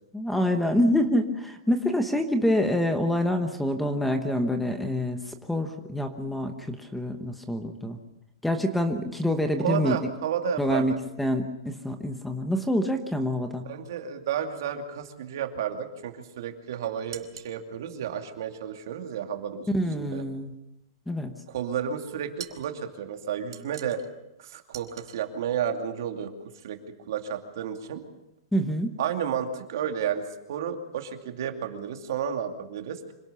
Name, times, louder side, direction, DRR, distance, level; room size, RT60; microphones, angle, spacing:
voice 1, 0.1-8.0 8.4-10.0 10.6-13.7 19.7-20.5 21.1-21.3 28.5-28.9, left 1 dB, 5° left, 6 dB, 1.1 m, -26 dB
voice 2, 9.6-11.0 13.6-19.7 19.9-20.2 21.5-24.0 24.4-26.3 26.6-26.8 27.1-28.0 29.0-33.1, right 8 dB, 60° right, 5 dB, 2.6 m, -32 dB
sound 1, 17.1-17.6 22.4-22.7 23.5-24.1 24.7-25.2, right 10 dB, 85° right, 2.6 m, -43 dB
26.0 x 18.0 x 6.9 m, 0.90 s
supercardioid pair, 170°, 2 cm